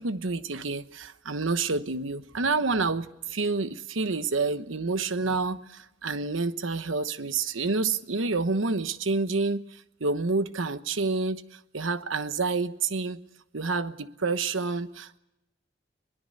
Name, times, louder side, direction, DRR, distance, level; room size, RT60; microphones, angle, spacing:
voice 1, 0.0-13.2 13.5-15.2, right 3 dB, 90° right, 1.1 m, -28 dB
23.5 x 20.5 x 6.6 m
head